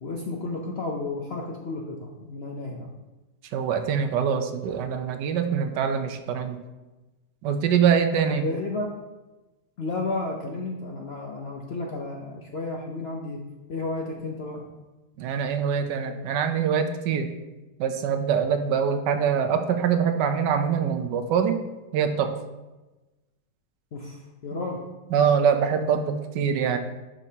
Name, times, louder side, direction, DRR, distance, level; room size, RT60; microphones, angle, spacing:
voice 1, 0.0-2.9 8.3-8.9 9.8-13.4 13.7-14.6 23.9-24.9, left 3 dB, 55° left, 0 dB, 0.7 m, -32 dB
voice 2, 3.5-6.6 7.4-8.6 15.2-17.3 17.8-21.6 21.9-22.4 25.1-26.8, right 7 dB, 75° right, 7 dB, 1.2 m, -24 dB
10.5 x 5.3 x 2.8 m, 1.1 s
omnidirectional pair, 1.9 m